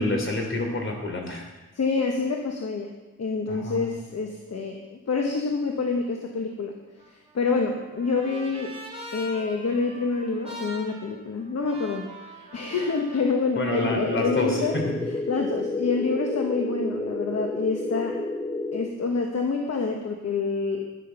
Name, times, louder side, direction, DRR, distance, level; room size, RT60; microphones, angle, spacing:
voice 1, 0.0-1.5 3.5-3.9 13.5-14.9, left 1 dB, 40° left, 2 dB, 3.2 m, -28 dB
voice 2, 1.7-6.7 7.1-8.7 9.1-14.8 15.3-18.2 18.7-20.9, left 4 dB, 55° left, 2 dB, 1.3 m, -27 dB
Trumpet, 7.0-13.3, equal, 20° right, 3.0 m, -43 dB
sound 1, 13.9-18.9, left 2 dB, 20° left, 1.2 m, -30 dB
12.0 x 11.0 x 5.6 m, 1.2 s
wide cardioid pair, 125°, 30 cm